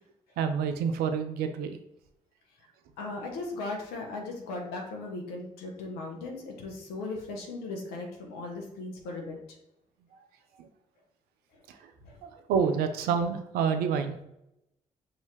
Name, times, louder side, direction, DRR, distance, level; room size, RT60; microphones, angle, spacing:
voice 1, 0.4-1.8 10.6-10.7 11.7-11.8 12.2-14.2, right 6 dB, 75° right, 8 dB, 0.5 m, -28 dB
voice 2, 3.0-9.4 11.5-11.6 12.0-12.2, left 3 dB, 80° left, 1 dB, 1.0 m, -38 dB
5.4 x 2.8 x 3.0 m, 0.84 s
hypercardioid pair, 45°, 16 cm